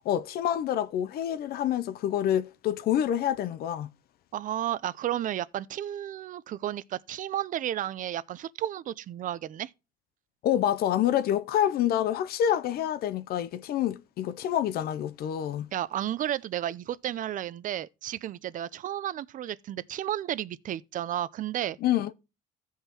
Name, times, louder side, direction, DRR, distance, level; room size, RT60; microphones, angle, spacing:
voice 1, 0.1-3.9 10.4-15.7 21.8-22.1, left 11 dB, 65° left, 0.6 m, -27 dB
voice 2, 4.3-9.7 15.7-21.8, right 12 dB, 50° right, 0.5 m, -32 dB
16.0 x 5.6 x 2.9 m
cardioid pair, 110°, 17 cm